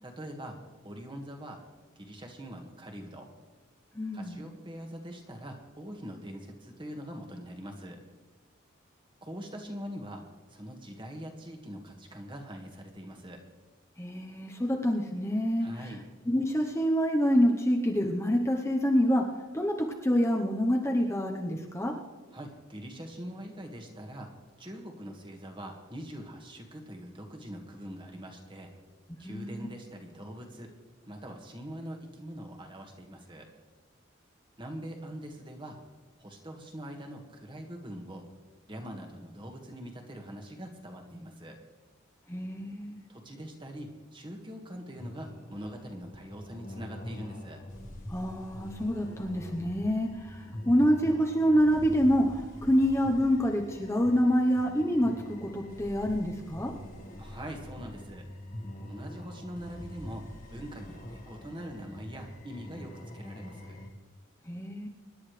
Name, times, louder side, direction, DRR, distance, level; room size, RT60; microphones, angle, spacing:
voice 1, 0.0-0.6 0.8-1.6 2.0-3.3 4.1-8.0 9.2-13.4 15.6-16.0 22.3-24.3 24.6-28.7 29.2-30.7 31.0-33.5 34.6-35.8 36.2-38.3 38.7-41.6 43.1-47.6 57.2-58.3 58.8-60.2 60.5-63.8, equal, 25° right, 2 dB, 1.8 m, -43 dB
voice 2, 3.9-4.4 14.0-15.7 16.3-19.2 19.5-21.9 29.2-29.7 42.3-43.0 48.1-55.1 55.4-56.7 64.5-64.9, equal, 15° left, 0 dB, 1.0 m, -26 dB
sound 1, 45.0-63.9, left 1 dB, 40° left, 1.7 m, -45 dB
25.0 x 11.0 x 3.3 m, 1.3 s
head